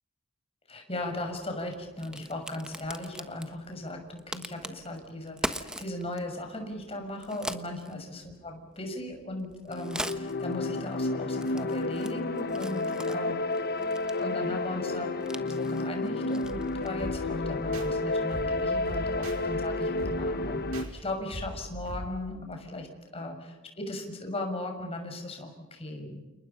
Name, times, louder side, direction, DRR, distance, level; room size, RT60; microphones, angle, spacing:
voice 1, 0.7-13.3 14.1-15.1 15.4-22.9 23.1-26.2, left 1 dB, 30° left, 3 dB, 6.3 m, -37 dB
Crack, 1.0-17.1, right 1 dB, 5° right, 1.3 m, -43 dB
sound 1, 9.7-20.9, left 2 dB, 50° left, 1.2 m, -31 dB
sound 2, 16.4-22.1, equal, 80° right, 5.3 m, -41 dB
30.0 x 29.5 x 5.7 m, 1.2 s
head